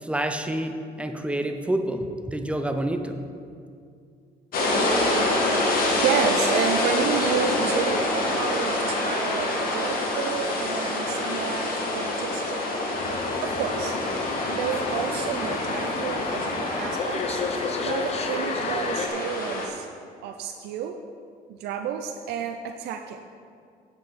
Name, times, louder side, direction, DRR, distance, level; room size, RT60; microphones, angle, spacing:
voice 1, 0.0-3.2, right 1 dB, 5° right, 6 dB, 0.6 m, -28 dB
sound 1, 4.5-19.7, left 1 dB, 60° left, 1.7 m, -26 dB
voice 2, 5.9-12.6 13.4-14.0 14.5-17.4 17.8-19.9 20.2-21.0 21.6-23.2, right 8 dB, 75° right, 5 dB, 0.5 m, -30 dB
sound 2, 13.0-19.1, left 5 dB, 40° left, 0.8 m, -32 dB
9.6 x 8.1 x 4.2 m, 2.3 s
cardioid pair, 110°, 17 cm